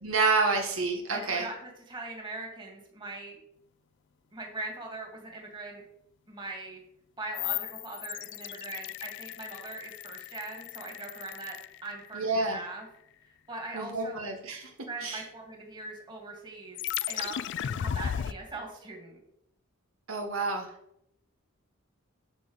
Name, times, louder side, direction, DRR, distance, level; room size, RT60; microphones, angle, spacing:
voice 1, 0.0-1.5 12.1-12.6 13.7-14.7 15.0-15.2 20.1-20.7, right 3 dB, 75° right, 2 dB, 1.3 m, -28 dB
voice 2, 1.1-3.4 4.3-5.8 6.3-6.8 7.2-11.6 11.8-12.9 13.2-14.2 14.9-16.8 17.1-19.2, right 2 dB, 25° right, 0 dB, 2.4 m, -41 dB
sound 1, 7.3-12.4 16.8-18.3, left 10 dB, 60° left, 0.3 m, -36 dB
11.5 x 4.0 x 6.5 m, 0.76 s
head